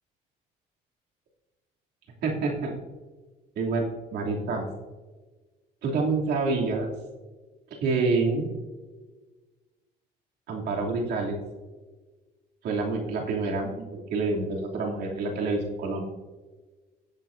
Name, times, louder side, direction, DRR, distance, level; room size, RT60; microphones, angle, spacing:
voice 1, 2.2-2.7 3.6-3.9 4.1-4.7 5.8-6.9 7.8-8.5 10.5-11.4 12.6-16.1, right 3 dB, 75° right, -1 dB, 2.8 m, -27 dB
18.5 x 7.7 x 2.7 m, 1.3 s
cardioid pair, 110°, 17 cm